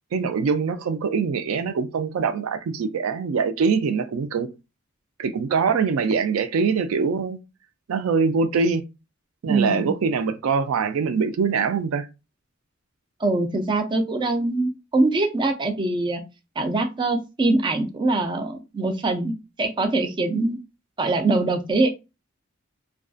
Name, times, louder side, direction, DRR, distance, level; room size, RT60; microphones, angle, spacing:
voice 1, 0.1-4.5 5.2-7.4 7.9-8.8 9.4-12.1, right 5 dB, 85° right, 0.4 m, -23 dB
voice 2, 9.4-9.9 13.2-16.2 16.6-19.3 19.6-20.6 21.0-21.9, right 2 dB, 20° right, 0.4 m, -23 dB
2.4 x 2.3 x 2.4 m
head